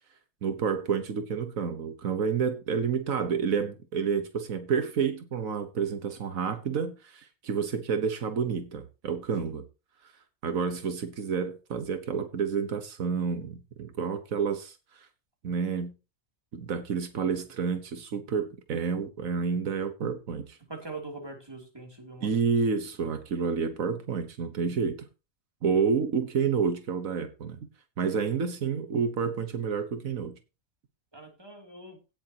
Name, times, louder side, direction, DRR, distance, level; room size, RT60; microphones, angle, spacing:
voice 1, 0.4-9.6 10.4-14.8 15.4-15.9 16.5-20.6 22.2-25.0 25.6-27.7 28.0-30.3, right 6 dB, 85° right, 1.6 m, -29 dB
voice 2, 20.7-22.4 31.1-32.0, right 3 dB, 20° right, 3.0 m, -42 dB
17.0 x 7.4 x 2.9 m
omnidirectional pair, 1.4 m